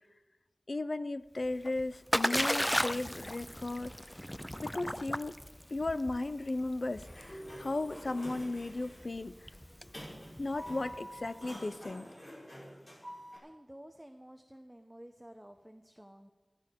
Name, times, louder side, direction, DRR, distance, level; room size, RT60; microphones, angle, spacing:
voice 1, 0.7-3.9 4.6-5.4 5.7-9.3 10.4-12.1, left 2 dB, 70° left, 13 dB, 0.7 m, -35 dB
Splash splatter, 1.4-11.3, equal, 10° left, 0.5 m, -36 dB
Sliding door, 6.9-13.4, equal, 45° left, 6.6 m, -48 dB
voice 2, 13.4-16.3, equal, 10° right, 6 dB, 1.0 m, -52 dB
15.5 x 15.0 x 5.3 m, 1.2 s
wide cardioid pair, 50°, 0 cm